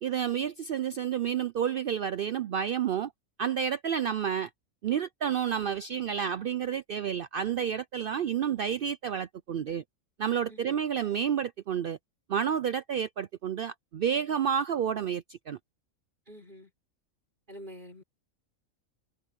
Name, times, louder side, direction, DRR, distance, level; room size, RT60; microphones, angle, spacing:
voice 1, 0.0-3.1 3.4-4.5 4.8-9.8 10.2-12.0 12.3-15.6, right 8 dB, 75° right, 0.5 m, -30 dB
voice 2, 10.5-10.8 16.3-16.7 17.5-18.0, equal, 35° right, 5.6 m, -46 dB
omnidirectional pair, 1.4 m